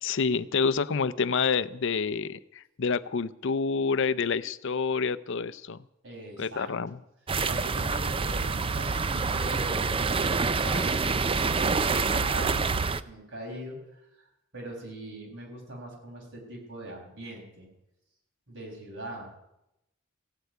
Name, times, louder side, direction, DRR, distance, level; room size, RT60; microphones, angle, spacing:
voice 1, 0.0-5.8 6.4-7.0, left 5 dB, 65° left, 16 dB, 0.6 m, -28 dB
voice 2, 6.0-6.7 7.4-12.7 13.1-17.7 18.5-19.3, right 1 dB, 65° right, 0 dB, 5.7 m, -41 dB
sound 1, 7.3-13.0, right 4 dB, 25° right, 0.5 m, -27 dB
16.0 x 8.0 x 9.4 m, 0.86 s
head